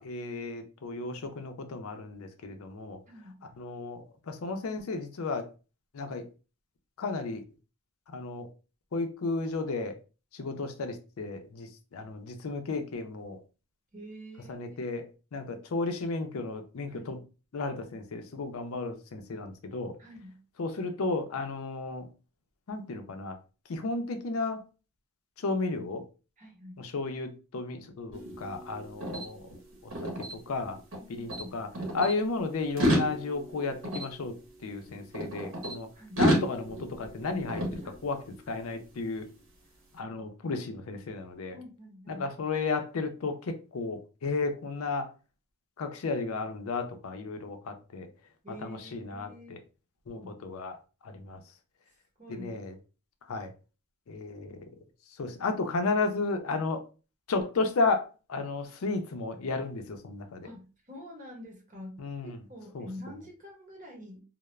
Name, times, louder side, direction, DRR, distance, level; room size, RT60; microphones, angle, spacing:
voice 1, 0.0-3.0 3.6-5.5 5.9-6.3 7.0-7.4 8.1-8.5 8.9-10.0 10.3-13.4 14.5-15.1 15.3-17.2 17.5-19.9 20.6-22.1 22.7-23.3 23.7-24.6 25.4-26.0 26.8-29.5 29.8-30.8 31.1-31.7 31.9-34.3 34.6-35.9 36.2-39.3 39.9-41.6 42.1-45.1 45.8-48.1 48.6-49.6 50.1-50.8 51.0-51.4 52.3-52.7 53.3-53.5 54.1-54.6 55.2-56.8 57.3-60.5 62.0-62.4 62.7-62.9, left 3 dB, 80° left, 0.5 m, -33 dB
voice 2, 3.1-3.4 13.9-14.8 16.9-17.1 20.0-20.3 26.4-26.8 31.0-31.5 36.0-36.2 37.8-38.0 38.3-38.4 39.2-39.4 41.5-42.3 48.4-49.6 50.1-50.3 52.2-52.6 60.4-64.2, equal, 35° right, 0.9 m, -47 dB
sound 1, 28.1-31.0 31.3-32.1 32.6-35.7 36.2-38.4, equal, 65° right, 0.9 m, -32 dB
2.3 x 2.0 x 3.0 m
head